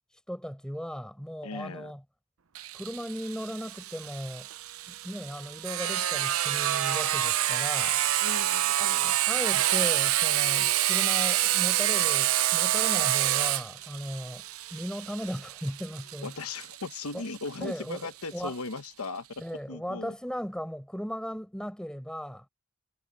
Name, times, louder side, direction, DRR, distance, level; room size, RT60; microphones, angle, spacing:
voice 1, 0.3-2.0 2.7-4.5 4.9-8.0 8.8-14.4 14.7-16.3 17.1-17.2 17.6-18.5 19.4-22.5, equal, 5° left, 4.7 m, -37 dB
voice 2, 1.4-1.9 8.2-9.1 16.2-19.4 19.7-20.1, left 3 dB, 80° left, 1.1 m, -38 dB
Sawing, 2.6-18.0, right 13 dB, 75° right, 0.7 m, -27 dB
head